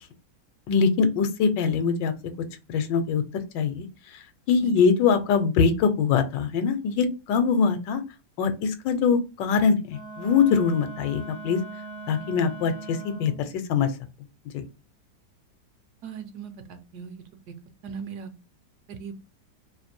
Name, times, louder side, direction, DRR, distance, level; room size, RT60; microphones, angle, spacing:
voice 1, 0.7-2.1 2.7-3.2 3.5-3.9 4.5-8.0 8.4-11.6 12.1-13.3 13.7-13.9 14.5-14.6, left 6 dB, 85° left, 9 dB, 1.3 m, -23 dB
Wind instrument woodwind instrument, 9.9-13.5, right 3 dB, 45° left, 0.6 m, -40 dB
voice 2, 16.0-17.2 17.8-18.3 18.9-19.2, right 6 dB, 70° right, 8 dB, 1.1 m, -38 dB
3.1 x 2.6 x 4.3 m, 0.29 s
omnidirectional pair, 2.0 m